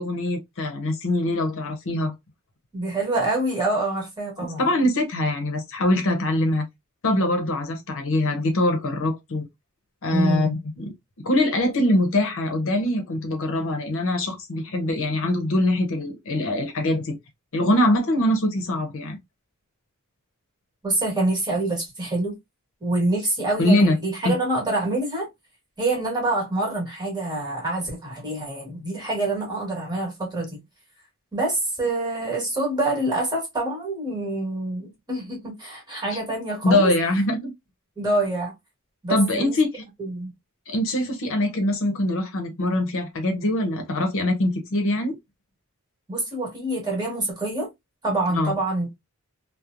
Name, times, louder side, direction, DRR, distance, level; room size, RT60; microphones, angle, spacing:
voice 1, 0.0-2.1 4.4-6.7 7.0-9.5 10.0-10.9 11.2-17.2 17.5-19.2 23.6-24.0 24.2-24.3 36.1-36.2 36.6-37.5 39.1-39.8 40.7-45.2 48.3-48.5, left 1 dB, 60° left, 0.7 m, -23 dB
voice 2, 2.7-4.7 10.1-10.5 20.8-22.3 22.8-25.3 25.8-30.6 31.3-36.9 38.0-38.5 39.0-39.6 40.0-40.3 46.1-47.7 48.0-49.0, right 2 dB, 20° right, 1.3 m, -26 dB
3.0 x 2.0 x 2.4 m
head